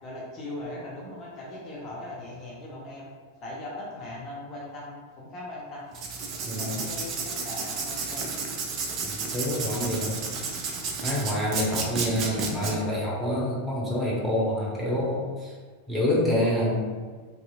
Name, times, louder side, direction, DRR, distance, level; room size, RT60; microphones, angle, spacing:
voice 1, 0.0-3.1 3.4-5.9 6.5-8.3 12.3-12.5, left 2 dB, 30° left, -5 dB, 0.6 m, -39 dB
Writing, 5.9-12.7, right 4 dB, 35° right, 0.4 m, -32 dB
voice 2, 6.4-6.9 9.0-10.2 11.0-15.5 15.9-16.9, left 1 dB, 5° right, -6 dB, 0.8 m, -27 dB
2.8 x 2.4 x 2.3 m, 1.5 s
figure-of-eight pair, 90°, 0 cm